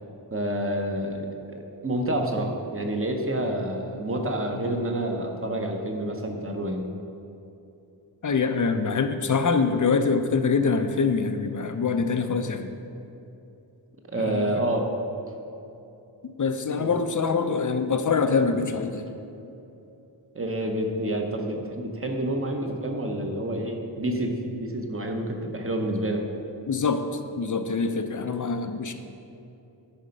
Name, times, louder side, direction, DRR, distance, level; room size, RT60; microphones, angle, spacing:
voice 1, 0.3-6.9 14.1-14.9 16.8-16.9 20.3-26.2, right 1 dB, 30° right, 3 dB, 0.9 m, -28 dB
voice 2, 8.2-12.7 14.1-14.7 16.2-19.1 26.7-27.0 27.4-28.9, left 5 dB, 45° left, 8 dB, 0.5 m, -25 dB
10.0 x 4.3 x 5.3 m, 2.8 s
wide cardioid pair, 95°, 44 cm